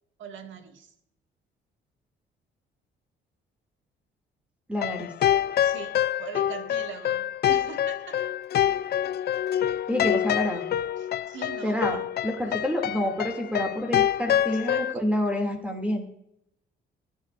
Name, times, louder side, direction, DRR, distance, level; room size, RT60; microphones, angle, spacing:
voice 1, 0.2-0.9 5.6-8.2 11.0-12.1 12.4-12.6 14.3-15.0, right 7 dB, 75° right, 5 dB, 2.0 m, -41 dB
voice 2, 4.7-5.1 9.9-10.6 11.6-12.0 12.2-16.1, left 1 dB, 5° right, 2 dB, 2.5 m, -28 dB
sound 1, 4.8-14.9, left 11 dB, 55° left, 0.4 m, -26 dB
24.5 x 10.5 x 2.5 m, 0.79 s
cardioid pair, 90°, 20 cm